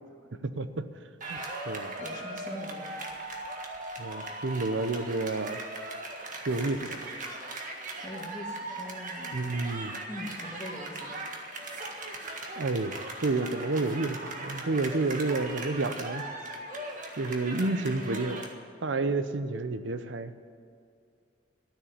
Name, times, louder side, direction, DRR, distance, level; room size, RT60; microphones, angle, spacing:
voice 1, 0.4-0.9 1.3-1.4 1.7-1.9 4.0-5.6 6.5-7.1 9.3-10.0 12.6-16.2 17.2-18.5 18.8-20.3, right 3 dB, 80° right, 11 dB, 0.7 m, -30 dB
sound 1, 1.2-18.5, right 2 dB, 45° right, 1.7 m, -39 dB
voice 2, 2.0-2.8 8.0-9.4 10.1-11.2, left 1 dB, 25° left, 0 dB, 1.9 m, -42 dB
13.0 x 7.4 x 10.0 m, 2.4 s
head